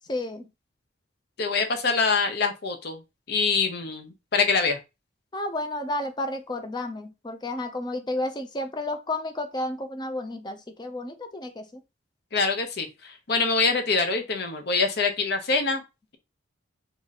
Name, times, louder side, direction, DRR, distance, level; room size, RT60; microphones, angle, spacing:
voice 1, 0.1-0.5 5.3-11.8, left 1 dB, 20° left, 7 dB, 0.5 m, -31 dB
voice 2, 1.4-3.0 3.3-4.8 12.3-15.8, left 4 dB, 55° left, 5 dB, 0.7 m, -25 dB
2.9 x 2.5 x 4.0 m, 0.26 s
head